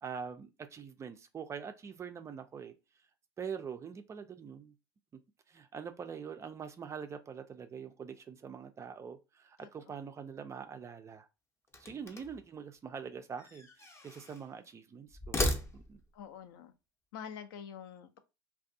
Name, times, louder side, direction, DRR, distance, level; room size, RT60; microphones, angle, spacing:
voice 1, 0.0-2.7 3.4-4.7 5.1-5.2 5.5-11.3 11.8-15.4 15.7-16.0, right 6 dB, 25° right, 0.3 m, -44 dB
sound 1, 11.7-12.5 13.4-14.5 15.1-16.2, left 1 dB, 20° left, 0.6 m, -36 dB
voice 2, 16.1-16.7 17.1-18.2, left 8 dB, 65° left, 0.4 m, -46 dB
2.4 x 2.3 x 2.6 m
hypercardioid pair, 80°, 12 cm